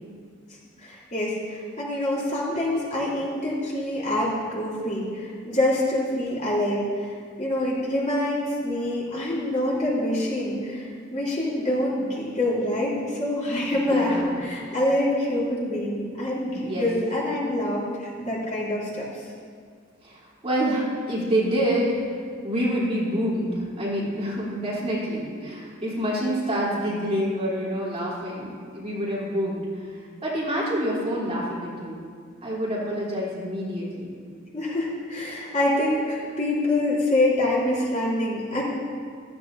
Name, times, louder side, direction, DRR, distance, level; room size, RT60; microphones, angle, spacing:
voice 1, 0.8-7.1 7.4-19.2 34.5-38.6, left 1 dB, 35° left, -6 dB, 3.3 m, -26 dB
voice 2, 13.7-14.3 16.6-16.9 20.0-22.0 22.4-28.5 28.7-32.0 32.4-34.1, equal, 30° right, -7 dB, 3.3 m, -27 dB
15.0 x 14.0 x 2.7 m, 2.1 s
head